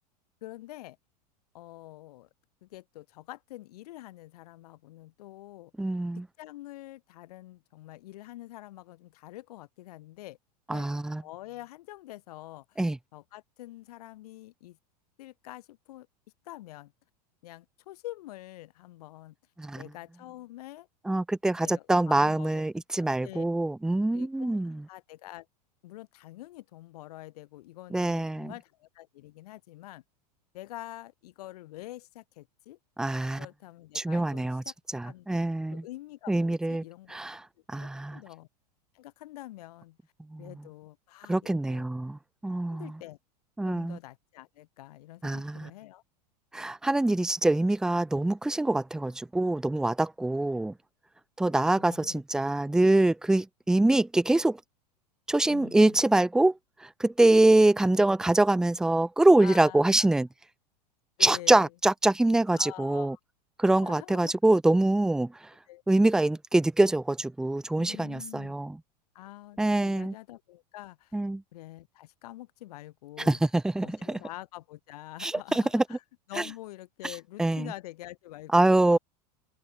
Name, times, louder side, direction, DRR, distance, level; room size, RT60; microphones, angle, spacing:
voice 1, 0.4-1.0 1.5-2.3 2.6-5.7 6.4-10.4 10.7-10.9 11.2-12.8 13.1-14.8 15.2-16.1 16.4-16.9 17.4-19.3 19.8-20.9 21.6-22.6 23.0-23.4 24.1-24.6 24.9-25.5 25.8-30.0 30.5-32.8 33.4-34.7 35.0-35.3 35.7-37.2 38.1-38.5 38.9-40.0 40.4-41.9 42.7-43.2 43.6-46.0 51.8-52.2 55.5-56.0 59.4-60.1 61.2-61.7 62.5-63.2 63.6-64.3 65.7-65.8 67.8-68.5 69.1-71.2 71.5-73.4 73.8-76.0 76.3-79.0, left 16 dB, 65° left, 2.9 m, -46 dB
voice 2, 5.8-6.3 10.7-11.2 12.8-13.0 19.6-19.8 21.1-24.8 27.9-28.5 33.0-33.4 34.0-34.6 34.9-35.8 36.3-36.8 37.1-37.4 37.7-38.2 40.3-40.4 41.3-42.9 43.6-44.0 45.2-45.7 46.5-50.7 51.4-54.6 55.3-56.5 56.8-60.3 61.2-63.2 63.6-65.3 65.9-68.8 69.6-70.1 71.1-71.4 73.3-74.2 75.2-75.8 77.4-77.7 78.5-79.0, right 2 dB, 5° right, 0.3 m, -24 dB
hypercardioid pair, 90°, 21 cm